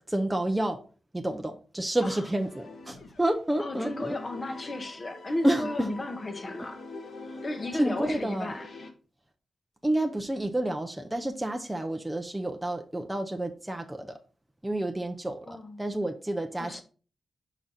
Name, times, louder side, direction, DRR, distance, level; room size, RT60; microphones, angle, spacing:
voice 1, 0.1-0.8 1.1-4.2 5.4-5.7 7.3-7.4 7.7-8.5 9.8-14.2 14.6-16.8, right 1 dB, 10° right, 0.5 m, -29 dB
sound 1, 2.1-3.4 3.7-8.9, left 3 dB, 60° left, 1.3 m, -44 dB
voice 2, 3.6-6.8 7.4-8.7 15.5-16.0 16.6-16.8, left 2 dB, 30° left, 0.9 m, -35 dB
5.7 x 4.9 x 4.1 m
wide cardioid pair, 135°, 0 cm